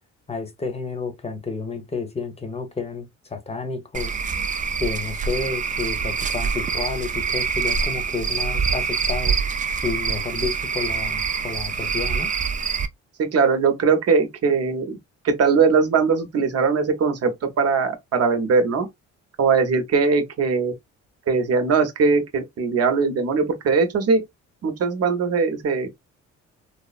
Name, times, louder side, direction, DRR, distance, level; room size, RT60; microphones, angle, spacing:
voice 1, 0.3-4.1 4.8-9.4 9.8-12.3, left 4 dB, 20° left, 0.8 m, -30 dB
Cricket / Frog, 3.9-12.9, right 5 dB, 25° right, 0.4 m, -25 dB
voice 2, 13.2-15.0 15.2-17.3 17.6-18.9 19.4-20.7 21.3-24.2 24.6-25.9, right 5 dB, 55° right, 0.9 m, -20 dB
3.4 x 2.0 x 2.4 m
cardioid pair, 90°, 30 cm